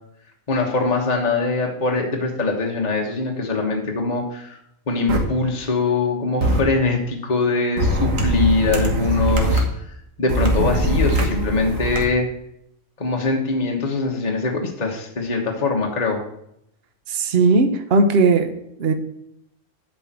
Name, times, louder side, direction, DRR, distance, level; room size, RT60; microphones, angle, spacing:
voice 1, 0.5-4.6 4.9-9.7 10.2-12.3 13.0-16.2, left 3 dB, 35° left, 0 dB, 1.3 m, -22 dB
sound 1, 5.1-5.2 6.4-6.6 7.8-9.6 10.3-12.0, right 1 dB, 80° right, 1.9 m, -21 dB
voice 2, 17.1-18.5 18.8-18.9, right 3 dB, 55° right, 8 dB, 1.1 m, -17 dB
8.5 x 5.1 x 7.4 m, 0.77 s
omnidirectional pair, 1.3 m